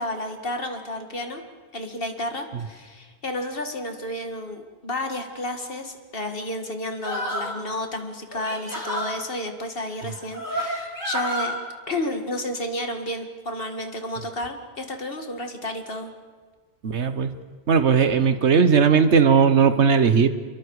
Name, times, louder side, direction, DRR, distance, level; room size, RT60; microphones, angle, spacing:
voice 1, 0.0-1.4 1.7-11.5 11.9-16.1, left 1 dB, 55° left, 5 dB, 2.2 m, -31 dB
sound 1, 7.0-7.6 8.3-9.1 10.0-11.5, equal, 15° left, 5.0 m, -29 dB
voice 2, 16.8-17.3 17.7-20.3, right 6 dB, 80° right, 10 dB, 1.4 m, -17 dB
28.5 x 23.0 x 4.9 m, 1.5 s
omnidirectional pair, 1.1 m